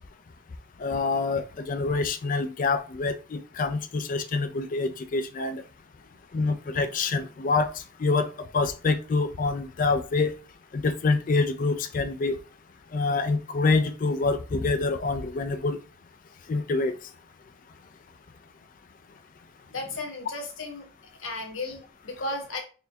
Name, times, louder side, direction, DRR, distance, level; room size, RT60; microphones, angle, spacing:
voice 1, 0.8-5.6 6.3-10.4 10.7-12.4 12.9-15.8 16.5-17.1, left 3 dB, 40° left, 0.3 m, -26 dB
voice 2, 19.7-20.9 21.2-22.6, left 2 dB, 70° left, 1.2 m, -34 dB
4.3 x 3.4 x 2.7 m
head